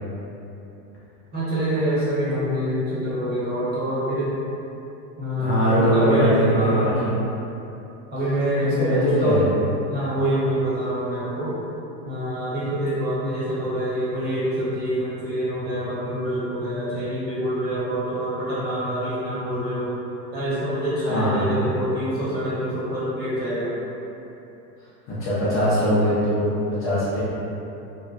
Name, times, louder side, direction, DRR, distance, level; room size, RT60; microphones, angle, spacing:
voice 1, 1.3-4.3 5.2-7.2 8.1-9.4 9.9-11.6 12.0-19.9 20.3-23.7, equal, 20° right, -11 dB, 1.0 m, -26 dB
voice 2, 5.4-7.1 8.6-9.5 21.0-21.6 25.1-27.2, equal, 25° left, -10 dB, 0.6 m, -21 dB
2.8 x 2.1 x 2.4 m, 2.9 s
hypercardioid pair, 110°, 50 cm